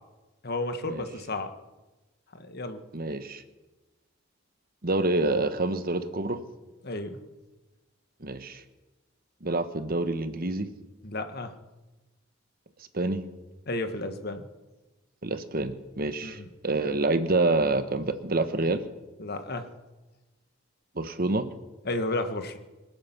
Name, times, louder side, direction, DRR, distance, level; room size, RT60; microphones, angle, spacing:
voice 1, 0.4-1.5 2.3-2.8 6.8-7.2 11.0-11.5 13.7-14.5 16.2-16.5 19.2-19.7 21.8-22.6, left 2 dB, 55° left, 7 dB, 1.5 m, -32 dB
voice 2, 2.9-3.4 4.8-6.4 8.2-8.6 9.4-10.7 12.9-13.2 15.2-18.8 20.9-21.5, right 2 dB, 45° right, 10 dB, 1.2 m, -27 dB
26.0 x 8.9 x 6.0 m, 1.1 s
head